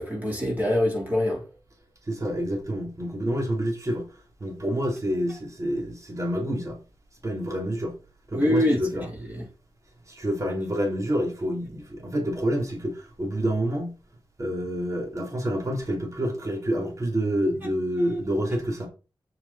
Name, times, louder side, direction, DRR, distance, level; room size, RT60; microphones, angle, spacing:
voice 1, 0.0-1.4 8.3-9.4, left 1 dB, 20° right, 3.5 m, -25 dB
voice 2, 2.1-6.8 7.2-8.0 8.3-9.1 10.1-14.0 14.4-18.9, equal, 40° right, 3.2 m, -28 dB
8.2 x 7.1 x 4.2 m
wide cardioid pair, 75°, 9 cm